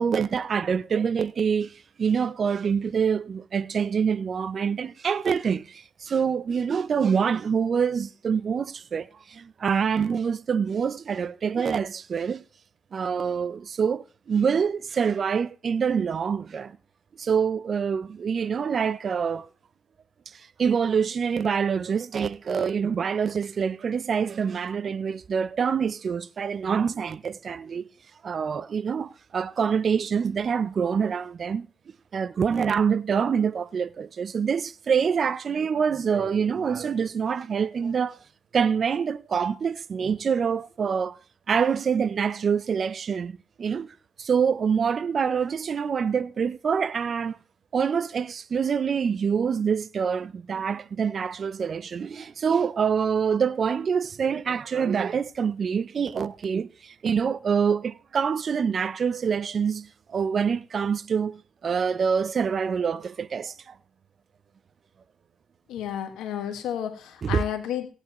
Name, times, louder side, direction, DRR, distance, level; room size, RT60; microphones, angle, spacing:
voice 1, 0.0-12.4 12.9-16.8 17.2-19.5 20.3-27.9 28.2-31.7 32.1-38.2 38.5-41.2 41.5-47.4 47.7-63.7 67.2-67.4, right 6 dB, 45° right, 0.4 m, -26 dB
voice 2, 65.7-67.9, left 10 dB, 90° left, 1.5 m, -31 dB
16.5 x 8.9 x 3.0 m
cardioid pair, 90°, 0 cm